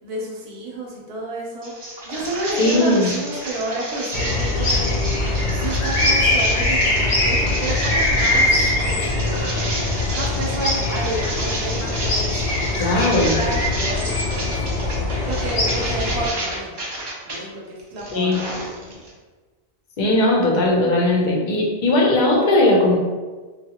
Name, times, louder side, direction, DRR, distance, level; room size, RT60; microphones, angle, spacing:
voice 1, 0.0-1.7 2.0-5.0 5.6-8.5 8.8-9.7 10.1-12.9 13.2-14.5 14.9-15.0 15.3-16.7 17.2-19.0, right 1 dB, 75° right, -3 dB, 0.9 m, -30 dB
sound 1, 1.6-17.4 17.8-19.1, right 1 dB, 40° right, 0.4 m, -31 dB
voice 2, 2.6-3.1 12.8-13.4 18.1-18.4 20.0-23.0, left 2 dB, 55° left, -2 dB, 0.7 m, -18 dB
sound 2, 4.1-16.3, left 2 dB, 85° left, 0.9 m, -22 dB
2.7 x 2.3 x 2.8 m, 1.3 s
omnidirectional pair, 1.1 m